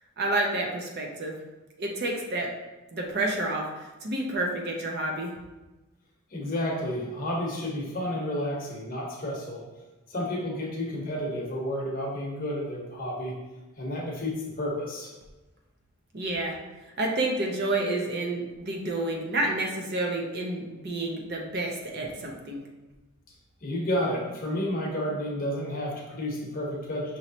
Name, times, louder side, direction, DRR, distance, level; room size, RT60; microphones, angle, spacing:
voice 1, 0.2-1.3 1.8-2.5 2.9-3.6 4.0-5.3 16.1-16.6 17.0-22.6, right 2 dB, 45° right, 0 dB, 0.6 m, -29 dB
voice 2, 6.3-9.6 10.1-13.3 13.8-15.1 23.6-27.2, left 1 dB, 40° left, -2 dB, 0.9 m, -31 dB
5.4 x 3.0 x 2.8 m, 1.1 s
head